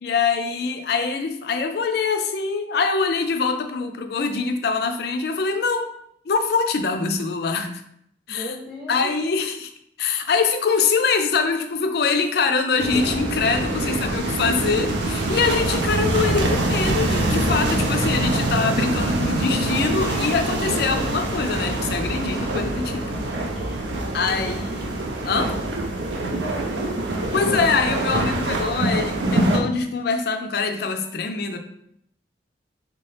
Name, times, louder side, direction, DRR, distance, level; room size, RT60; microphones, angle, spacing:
voice 1, 0.0-5.9 6.3-7.7 8.3-8.5 8.9-9.7 10.0-23.2 23.6-23.8 24.1-24.9 25.2-25.5 27.3-31.6, left 5 dB, 60° left, 6 dB, 0.4 m, -24 dB
voice 2, 8.3-9.1 17.9-18.2 20.9-21.0 24.3-24.9 26.2-27.0, equal, ahead, -7 dB, 0.9 m, -37 dB
sound 1, 12.8-29.6, right 2 dB, 80° right, 0.6 m, -24 dB
3.3 x 2.9 x 3.2 m, 0.72 s
head